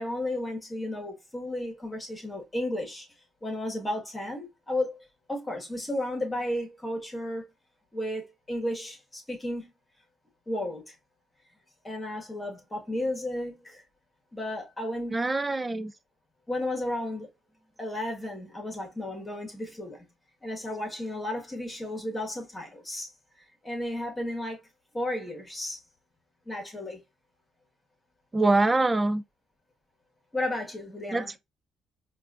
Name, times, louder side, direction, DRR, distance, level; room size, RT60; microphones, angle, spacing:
voice 1, 0.0-3.1 3.4-7.5 7.9-9.7 10.5-10.9 11.8-13.8 14.3-15.2 16.5-17.3 17.8-20.1 20.4-23.1 23.6-24.6 24.9-25.8 26.4-27.0 30.3-31.3, left 1 dB, 20° left, 1.7 m, -33 dB
voice 2, 15.1-15.9 28.3-29.2 31.1-31.4, right 2 dB, 20° right, 0.4 m, -24 dB
4.6 x 2.6 x 2.4 m
cardioid pair, 90°, 0 cm